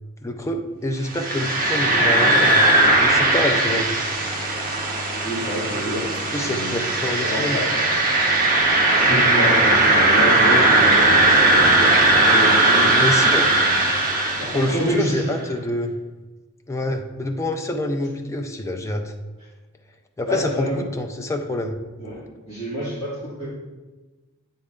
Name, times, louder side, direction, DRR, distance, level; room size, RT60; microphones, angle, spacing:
voice 1, 0.2-2.7 3.0-3.9 6.3-7.6 9.1-9.2 13.0-13.5 14.5-15.9 16.7-19.1 20.2-21.8, left 1 dB, 15° left, 4 dB, 0.4 m, -26 dB
sound 1, 1.1-15.0, right 2 dB, 40° right, 0.9 m, -18 dB
voice 2, 5.2-6.7 7.1-7.7 9.0-13.0 14.4-15.2 20.3-20.8 22.0-23.5, equal, 30° left, -11 dB, 1.8 m, -27 dB
8.4 x 3.2 x 3.7 m, 1.2 s
head